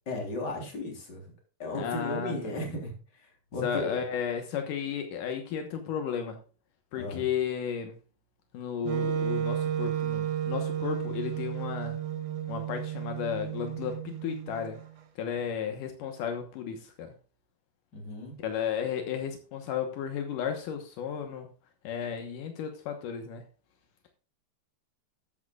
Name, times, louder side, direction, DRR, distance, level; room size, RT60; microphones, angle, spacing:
voice 1, 0.1-1.2 1.6-4.0 6.9-7.3 17.9-18.4, left 1 dB, 30° left, 1 dB, 3.9 m, -36 dB
voice 2, 1.7-2.4 3.6-6.4 6.9-7.9 8.5-12.0 12.5-14.8 15.2-17.1 18.4-21.5 21.8-23.4, left 8 dB, 80° left, 5 dB, 2.7 m, -33 dB
Wind instrument woodwind instrument, 8.8-14.9, right 9 dB, 75° right, 2.8 m, -32 dB
13.0 x 10.5 x 2.4 m, 0.37 s
omnidirectional pair, 3.7 m